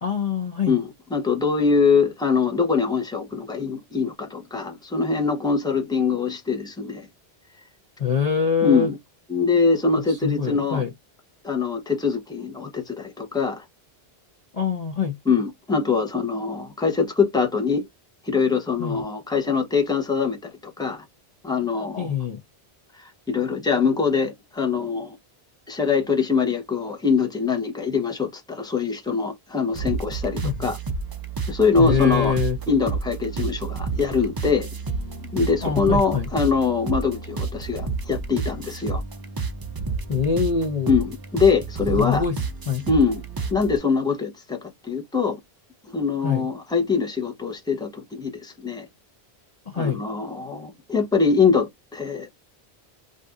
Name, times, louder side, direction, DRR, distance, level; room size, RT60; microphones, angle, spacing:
voice 1, 0.0-0.7 8.0-8.9 10.1-10.9 14.5-15.2 18.8-19.1 22.0-22.4 30.4-30.7 31.8-32.6 35.6-36.3 40.1-41.0 42.0-42.3 42.7-42.8 46.2-46.5 49.7-50.0, left 7 dB, 45° left, 0.7 m, -24 dB
voice 2, 0.7-7.1 8.6-9.0 9.3-10.8 11.4-13.6 15.3-17.8 18.2-21.0 21.4-22.1 22.9-25.2 25.7-30.8 31.5-32.4 32.7-34.7 35.3-39.0 40.9-42.2 42.9-43.2 43.5-45.4 45.9-48.9 49.7-52.3, left 5 dB, 5° left, 0.8 m, -23 dB
sound 1, 29.7-43.8, right 4 dB, 35° right, 0.3 m, -30 dB
2.6 x 2.5 x 3.4 m
omnidirectional pair, 1.1 m